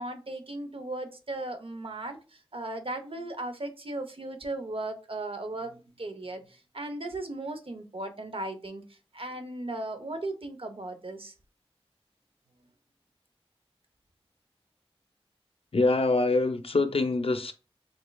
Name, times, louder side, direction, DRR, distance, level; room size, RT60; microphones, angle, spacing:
voice 1, 0.0-11.3, right 2 dB, 65° right, 0.6 m, -37 dB
voice 2, 15.7-17.5, left 3 dB, 70° left, 0.5 m, -24 dB
3.6 x 3.1 x 2.2 m
wide cardioid pair, 45°, 10 cm